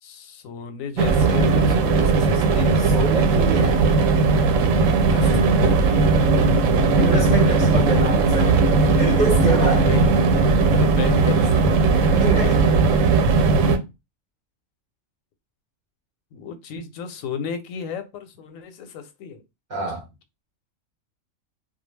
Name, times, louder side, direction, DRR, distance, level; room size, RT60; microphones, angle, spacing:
voice 1, 0.0-2.7 5.0-6.1 9.7-11.6 11.9-12.1 16.3-19.4, left 7 dB, 85° left, 1.0 m, -35 dB
sound 1, 1.0-13.8, right 4 dB, 80° right, 0.9 m, -18 dB
sound 2, 1.1-12.5, left 7 dB, 45° left, 0.7 m, -33 dB
voice 2, 2.8-3.8 7.0-8.6 8.9-9.9 11.6-11.7 12.2-12.7 19.7-20.0, right 3 dB, 55° right, 0.5 m, -25 dB
2.2 x 2.2 x 3.1 m
omnidirectional pair, 1.3 m